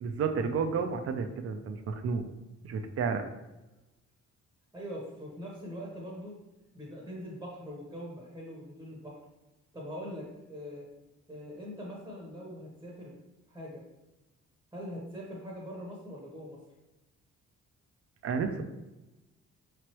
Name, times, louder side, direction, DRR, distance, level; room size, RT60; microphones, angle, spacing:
voice 1, 0.0-2.2 2.6-3.2 18.2-18.6, right 5 dB, 55° right, 6 dB, 0.5 m, -31 dB
voice 2, 4.7-6.3 6.7-9.2 9.7-10.9 11.3-13.2 13.5-13.8 14.7-16.6, equal, 10° right, -3 dB, 0.9 m, -42 dB
5.0 x 3.1 x 3.0 m, 1.0 s
cardioid pair, 140°, 29 cm